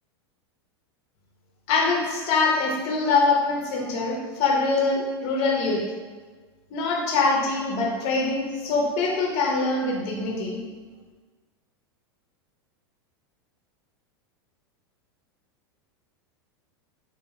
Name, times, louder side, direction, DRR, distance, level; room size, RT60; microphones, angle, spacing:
voice 1, 1.7-5.8 6.7-10.6, left 3 dB, 50° left, -1 dB, 0.9 m, -24 dB
3.4 x 2.7 x 3.1 m, 1.4 s
hypercardioid pair, 110°, 13 cm